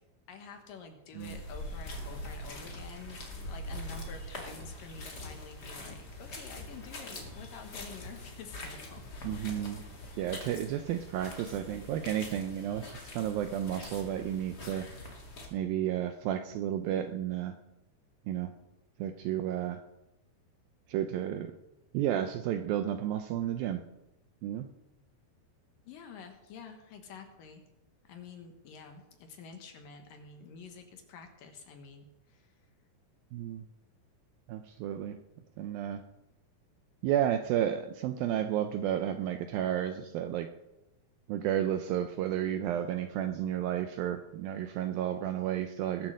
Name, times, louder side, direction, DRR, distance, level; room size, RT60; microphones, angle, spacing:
voice 1, 0.3-3.2 3.5-9.0 9.3-9.6 25.9-27.6 28.0-32.5, left 5 dB, 65° left, 5 dB, 2.6 m, -49 dB
sound 1, 1.2-15.5, left 1 dB, 35° left, 1.8 m, -43 dB
voice 2, 9.2-9.8 10.2-15.1 15.5-17.5 18.3-18.5 19.0-19.8 20.9-21.5 21.9-23.8 24.4-24.7 33.3-33.6 34.5-35.2 35.6-36.0 37.0-40.5 41.3-46.1, right 11 dB, 80° right, 8 dB, 2.1 m, -32 dB
20.5 x 7.3 x 6.4 m, 0.93 s
omnidirectional pair, 4.8 m